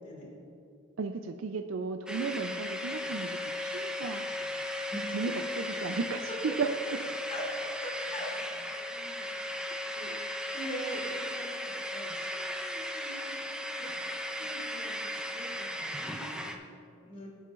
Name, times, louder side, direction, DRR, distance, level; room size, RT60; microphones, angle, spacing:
voice 1, 0.0-0.3 4.9-5.1 7.2-7.5 7.8-10.1 10.5-13.9 14.4-17.3, right 1 dB, 40° left, -4 dB, 2.8 m, -44 dB
voice 2, 1.0-4.3 5.1-6.7 10.0-10.2, right 4 dB, 75° right, 7 dB, 0.4 m, -35 dB
sound 1, 2.1-16.6, left 1 dB, 5° right, 0.6 m, -36 dB
18.5 x 8.4 x 2.5 m, 2.5 s
head